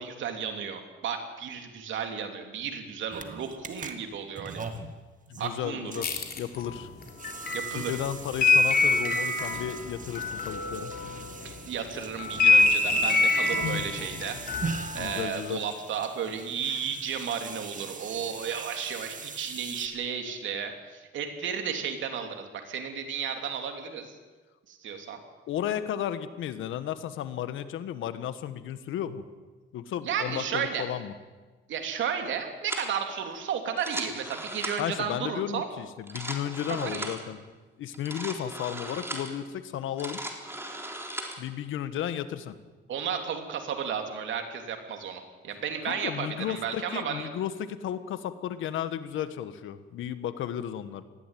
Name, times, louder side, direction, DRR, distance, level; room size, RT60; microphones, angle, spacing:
voice 1, 0.0-4.6 5.4-6.0 7.5-8.0 9.5-9.6 11.4-14.4 14.9-24.1 24.7-25.2 30.0-30.8 31.7-35.7 36.7-37.1 42.9-47.3, right 7 dB, 75° right, 5 dB, 3.3 m, -33 dB
sound 1, 3.1-19.9, right 4 dB, 40° right, 2.2 m, -42 dB
voice 2, 5.3-6.1 6.4-6.9 7.7-10.9 14.9-15.6 25.5-29.2 29.7-31.1 34.8-37.4 37.8-40.2 41.4-42.5 45.9-51.0, left 10 dB, 80° left, 12 dB, 1.5 m, -33 dB
sound 2, 6.0-11.5 11.9-15.2, left 3 dB, 50° left, 3.7 m, -25 dB
sound 3, 32.7-33.0 33.7-35.0 35.9-37.3 37.9-39.4 39.8-41.4, right 1 dB, 10° right, 3.9 m, -38 dB
20.0 x 15.5 x 9.3 m, 1.3 s
cardioid pair, 90°, 20 cm